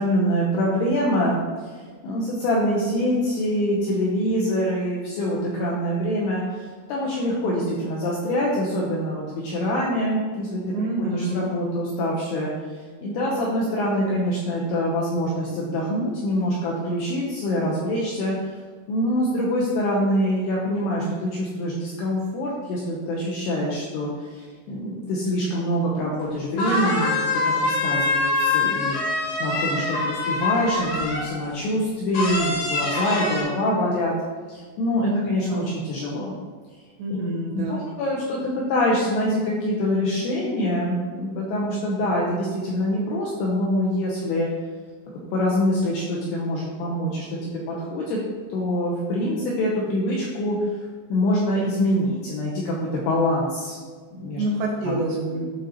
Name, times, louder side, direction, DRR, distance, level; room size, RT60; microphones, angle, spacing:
voice 1, 0.0-1.4 1.7-10.7 11.0-12.5 13.0-18.4 18.9-29.0 29.4-34.1 34.5-36.4 37.5-44.5 45.3-48.2 48.5-50.6 51.1-53.8 54.1-54.4 54.8-55.0 55.3-55.4, equal, 85° left, -4 dB, 2.4 m, -25 dB
voice 2, 10.7-11.5 35.0-35.7 37.0-37.9 54.4-55.5, right 1 dB, 80° right, -2 dB, 2.6 m, -27 dB
sound 1, 26.2-26.3 26.6-31.4 32.1-33.4, left 2 dB, 65° left, 1.9 m, -24 dB
11.5 x 3.9 x 2.8 m, 1.5 s
omnidirectional pair, 5.7 m